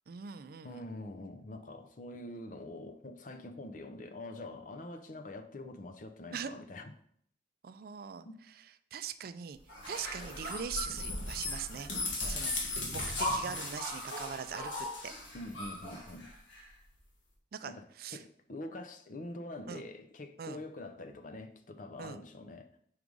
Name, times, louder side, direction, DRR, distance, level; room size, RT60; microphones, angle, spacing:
voice 1, 0.1-0.8 6.3-6.5 7.6-8.3 8.9-9.6 9.9-11.9 12.3-12.5 12.9-15.1 17.5-17.7 18.0-18.2 19.7-19.8 20.4-20.6 22.0-22.2, right 7 dB, 55° right, 0.4 m, -41 dB
voice 2, 0.6-6.9 8.2-8.3 12.2-12.5 15.3-16.3 17.7-17.8 18.1-22.7, left 2 dB, 45° left, 0.6 m, -45 dB
sound 1, 9.7-16.6, left 2 dB, 90° left, 1.6 m, -37 dB
4.8 x 4.8 x 5.2 m
head